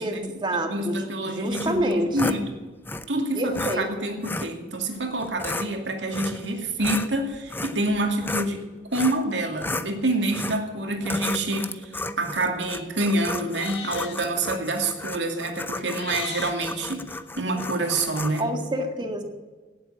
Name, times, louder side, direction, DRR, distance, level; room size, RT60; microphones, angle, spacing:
voice 1, 0.0-2.4 3.3-3.9 18.4-19.2, right 1 dB, 25° right, 4 dB, 1.9 m, -28 dB
voice 2, 0.5-2.6 3.1-17.1 17.4-18.5, right 2 dB, 85° right, 4 dB, 2.4 m, -27 dB
sound 1, 1.5-2.4 2.8-3.1 3.5-3.8 4.2-4.5 5.2-5.7 6.1-6.5 6.8-8.5 8.9-9.2 9.6-9.9 10.3-10.6 11.0-18.4, left 2 dB, 10° left, 0.7 m, -33 dB
Livestock farm animals working animals, 13.4-14.2 15.9-16.5 17.6-18.5, left 5 dB, 75° left, 1.8 m, -38 dB
18.0 x 7.8 x 8.4 m, 1.3 s
head